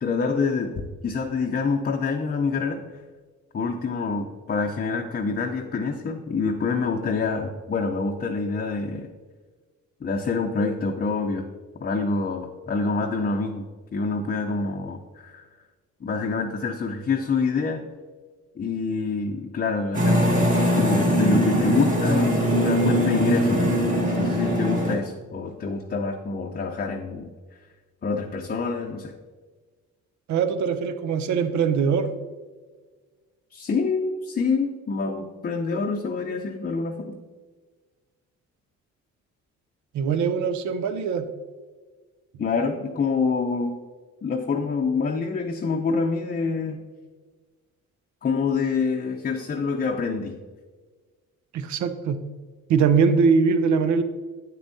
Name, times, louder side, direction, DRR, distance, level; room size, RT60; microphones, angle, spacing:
voice 1, 0.0-2.8 3.5-9.1 10.0-11.5 11.8-13.6 13.9-15.5 16.0-17.9 18.6-20.3 20.7-27.3 28.0-29.2 33.5-37.2 42.4-43.8 44.2-46.8 48.2-50.4, left 4 dB, 30° left, 2 dB, 0.6 m, -26 dB
sound 1, 19.9-25.0, equal, 25° right, 2.0 m, -21 dB
voice 2, 30.3-32.1 39.9-41.3 51.5-52.2 52.7-54.0, right 5 dB, 70° right, 10 dB, 0.6 m, -22 dB
8.3 x 6.8 x 2.7 m, 1.4 s
cardioid pair, 90°, 30 cm